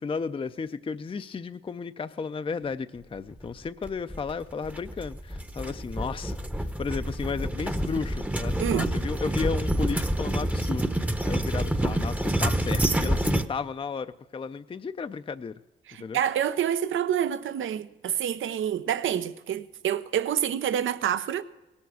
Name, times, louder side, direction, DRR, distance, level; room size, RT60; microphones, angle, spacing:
voice 1, 0.0-15.5 16.0-16.2, left 5 dB, 25° left, 0.4 m, -34 dB
sound 1, 3.8-13.5, right 1 dB, 5° right, 0.7 m, -28 dB
voice 2, 8.6-8.9 15.9-21.4, right 9 dB, 85° right, 0.6 m, -27 dB
17.5 x 7.1 x 6.1 m
cardioid pair, 60°, 20 cm